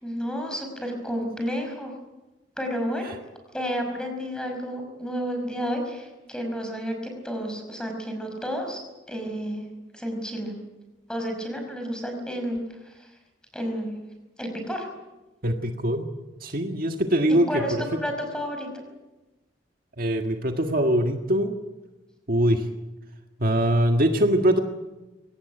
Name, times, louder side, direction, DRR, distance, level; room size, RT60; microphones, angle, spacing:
voice 1, 0.0-1.9 2.6-3.1 3.5-8.8 9.1-10.6 11.1-12.6 12.9-13.1 13.5-14.0 14.4-14.9 17.5-17.7 18.0-18.7, equal, 5° left, 3 dB, 5.5 m, -31 dB
voice 2, 15.4-16.1 16.4-18.0 20.0-21.5 22.3-22.7 23.4-24.6, right 1 dB, 50° right, 4 dB, 1.7 m, -23 dB
24.0 x 18.0 x 9.0 m, 1.1 s
head